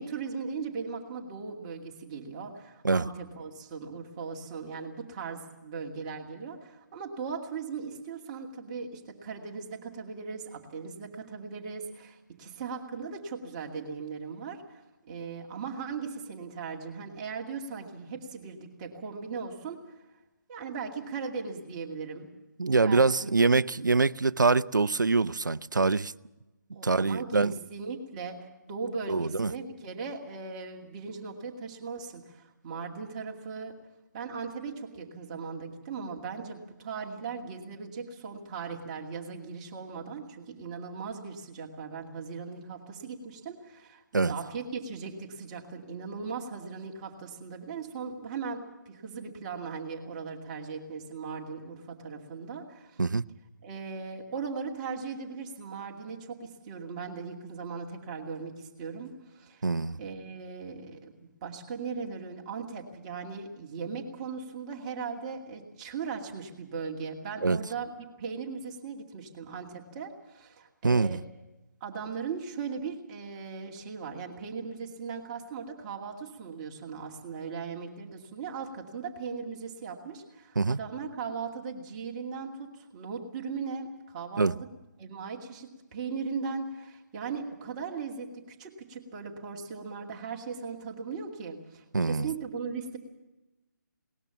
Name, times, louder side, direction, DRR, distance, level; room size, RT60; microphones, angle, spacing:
voice 1, 0.0-20.0 20.5-22.3 22.8-23.4 26.7-28.4 28.7-33.8 34.1-53.0 53.6-59.6 60.0-71.2 71.8-84.7 85.0-93.0, right 5 dB, 25° right, 2.3 m, -38 dB
voice 2, 22.6-26.1 26.8-27.5 29.1-29.5 44.1-44.3 53.0-53.2 59.6-60.0 67.4-67.6 70.8-71.2 80.6-80.8 84.4-84.5 91.9-92.3, right 3 dB, 75° right, 0.7 m, -24 dB
21.5 x 19.5 x 7.0 m
figure-of-eight pair, 150°, 10 cm